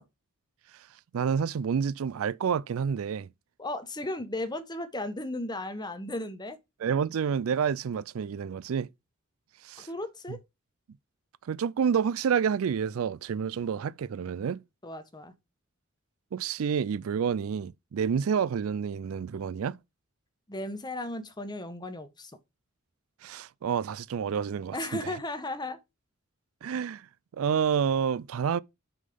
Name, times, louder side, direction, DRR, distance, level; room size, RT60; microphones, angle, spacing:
voice 1, 1.1-3.3 6.8-8.9 9.6-9.9 11.4-14.6 16.3-19.8 23.2-25.2 26.6-27.1 27.4-28.6, right 7 dB, 75° right, 0.4 m, -29 dB
voice 2, 3.6-6.6 9.8-10.4 14.8-15.3 20.5-22.3 24.7-25.8, left 1 dB, 20° left, 1.1 m, -35 dB
6.4 x 5.7 x 5.2 m
head